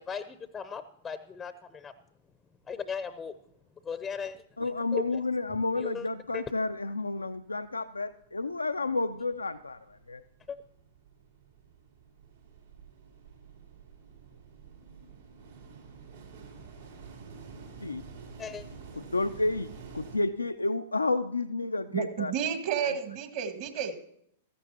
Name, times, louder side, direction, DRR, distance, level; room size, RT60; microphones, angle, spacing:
voice 1, 0.0-1.9 2.7-3.3 3.8-5.0 5.8-6.1 6.3-6.4 10.5-10.6 18.4-18.6, left 6 dB, 15° left, 13 dB, 0.6 m, -37 dB
sound 1, 3.5-3.6 3.9-4.8 5.2-20.2, right 5 dB, 70° right, 3.2 m, -50 dB
voice 2, 4.6-10.2 17.8-18.0 19.0-19.7 19.9-22.3 22.8-22.9, left 3 dB, 80° left, 10 dB, 0.4 m, -31 dB
voice 3, 21.9-24.0, right 8 dB, 50° right, 8 dB, 1.7 m, -31 dB
16.0 x 14.0 x 2.9 m, 0.72 s
figure-of-eight pair, 100°, 0 cm